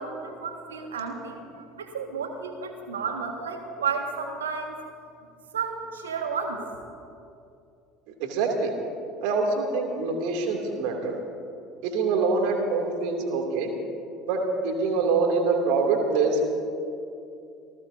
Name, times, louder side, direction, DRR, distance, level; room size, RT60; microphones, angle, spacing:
voice 1, 0.0-4.8 5.5-6.6, right 5 dB, 75° right, 4 dB, 1.7 m, -32 dB
voice 2, 8.2-8.7 9.2-11.2 11.8-13.7 14.3-16.5, right 4 dB, 60° right, 2 dB, 2.7 m, -25 dB
27.0 x 19.5 x 2.7 m, 2.6 s
figure-of-eight pair, 65°, 0 cm